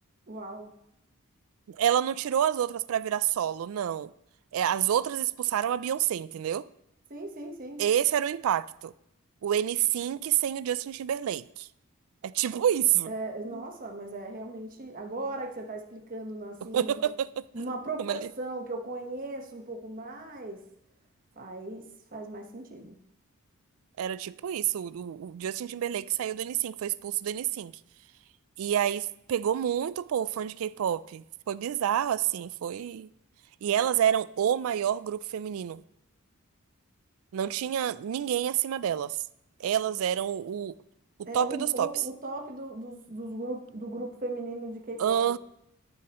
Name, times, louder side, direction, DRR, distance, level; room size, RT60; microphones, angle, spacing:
voice 1, 0.3-0.7 7.1-7.8 13.0-17.1 17.5-20.6 21.4-23.0 41.2-45.4, right 2 dB, 40° right, 1.1 m, -37 dB
voice 2, 1.7-4.1 4.5-6.6 7.8-8.9 9.4-11.7 12.2-13.1 13.5-13.6 16.7-17.4 18.0-18.2 24.0-27.7 28.6-33.1 33.6-35.8 37.3-39.2 39.6-40.8 41.3-41.9 45.0-45.4, right 10 dB, 65° right, 0.3 m, -28 dB
13.5 x 6.3 x 3.0 m
head